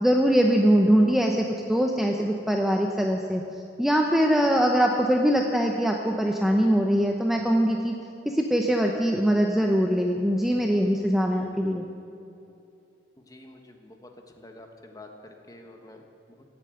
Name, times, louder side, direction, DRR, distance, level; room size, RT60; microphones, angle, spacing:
voice 1, 0.0-3.4 3.8-7.9 8.3-11.8, equal, ahead, 1 dB, 0.8 m, -22 dB
voice 2, 13.3-14.1 14.4-15.1 15.5-16.0, left 2 dB, 20° left, 3 dB, 1.4 m, -47 dB
17.0 x 8.7 x 7.9 m, 2.7 s
head